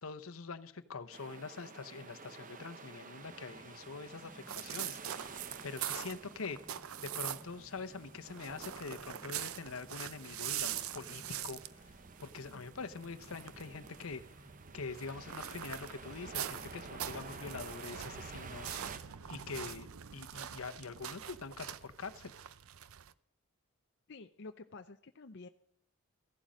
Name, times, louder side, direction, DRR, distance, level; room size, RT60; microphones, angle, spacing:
voice 1, 0.0-6.6 7.0-11.6 12.2-14.2 14.7-18.8 19.3-19.9 20.1-22.3, left 4 dB, 75° left, 10 dB, 0.9 m, -44 dB
sound 1, 1.1-19.0, right 4 dB, 35° right, 0.8 m, -52 dB
sound 2, 3.2-20.0, equal, 5° left, 0.8 m, -59 dB
sound 3, 4.5-7.7 8.0-23.1, right 10 dB, 75° right, 0.6 m, -43 dB
voice 2, 24.1-25.5, left 3 dB, 55° left, 6 dB, 0.6 m, -50 dB
15.0 x 11.5 x 5.1 m, 0.68 s
head